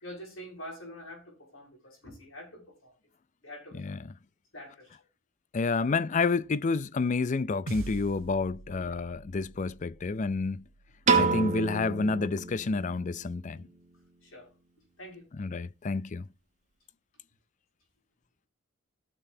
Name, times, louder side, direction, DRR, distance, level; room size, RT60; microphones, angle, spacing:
voice 1, 0.0-2.9 3.4-3.8 4.5-4.9 8.7-9.0 14.2-14.5 15.0-15.2, equal, 70° left, 6.2 m, -46 dB
voice 2, 3.7-4.1 5.5-10.6 11.2-13.7 15.3-16.3, left 4 dB, 35° left, 0.4 m, -29 dB
sound 1, 7.7-12.2, right 2 dB, 75° right, 0.9 m, -45 dB
Piano, 11.1-13.3, right 4 dB, 35° right, 1.5 m, -28 dB
16.5 x 6.9 x 2.7 m
head